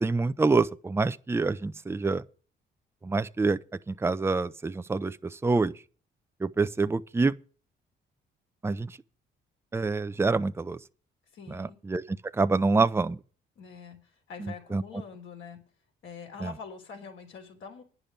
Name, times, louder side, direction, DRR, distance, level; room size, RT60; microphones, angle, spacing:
voice 1, 0.0-2.2 3.0-3.6 3.9-5.7 6.4-7.3 8.6-9.0 9.7-10.8 11.5-12.0 12.3-13.2 14.4-14.8 16.4-16.5, right 3 dB, 10° right, 0.5 m, -26 dB
voice 2, 11.3-11.8 13.6-15.6 16.0-17.8, left 6 dB, 75° left, 3.6 m, -44 dB
10.5 x 6.8 x 7.4 m
cardioid pair, 90°, 20 cm